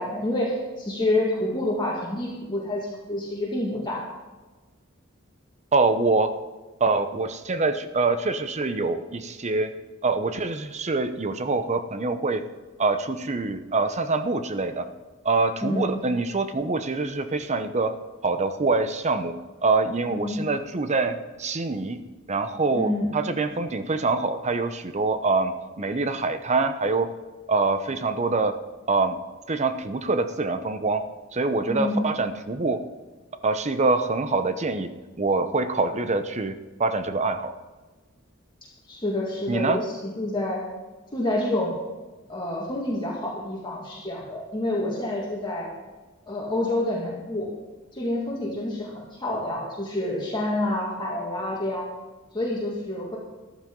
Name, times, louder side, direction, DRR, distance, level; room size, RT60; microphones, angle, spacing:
voice 1, 0.0-4.0 15.6-16.0 20.1-20.4 22.7-23.1 31.7-32.1 38.9-40.6 41.1-41.7 42.3-45.7 46.3-47.5 47.9-51.9 52.3-53.2, left 1 dB, 20° left, -4 dB, 2.1 m, -28 dB
voice 2, 5.7-6.3 6.8-9.7 10.0-12.4 12.8-14.9 15.2-18.0 18.2-19.3 19.6-22.0 22.3-27.1 27.5-28.6 28.9-29.2 29.5-31.1 31.3-32.8 33.4-34.9 35.2-36.5 36.8-37.5 39.5-39.8, right 3 dB, 35° right, 10 dB, 0.8 m, -25 dB
14.0 x 12.0 x 3.8 m, 1.2 s
head